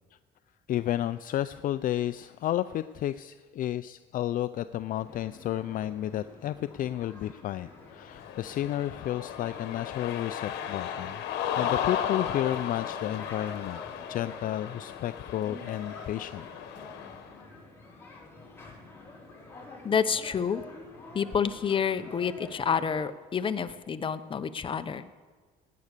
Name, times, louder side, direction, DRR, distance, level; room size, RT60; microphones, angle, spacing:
voice 1, 0.7-11.2 11.5-13.8 14.1-16.5, left 12 dB, 55° left, 13 dB, 0.4 m, -32 dB
sound 1, 5.0-23.0, left 2 dB, 15° left, 4.6 m, -47 dB
Cheering, 8.0-17.3, left 9 dB, 85° left, 1.2 m, -35 dB
voice 2, 19.8-20.6 21.1-25.0, left 7 dB, 30° left, 10 dB, 0.8 m, -28 dB
17.5 x 9.5 x 6.7 m, 1.5 s
cardioid pair, 110°, 17 cm